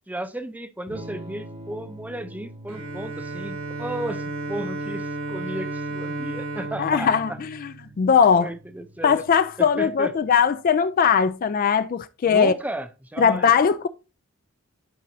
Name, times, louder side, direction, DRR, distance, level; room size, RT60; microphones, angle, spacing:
voice 1, 0.1-7.4 8.4-9.2 9.6-10.1 12.2-13.5, right 1 dB, 5° right, 0.6 m, -34 dB
Electric guitar / Strum, 0.9-10.6, right 1 dB, 25° right, 1.0 m, -45 dB
Bowed string instrument, 2.7-8.4, right 2 dB, 65° right, 1.7 m, -33 dB
voice 2, 6.8-8.5 9.0-12.5 13.2-13.9, left 6 dB, 40° left, 0.3 m, -20 dB
10.5 x 5.3 x 2.7 m
head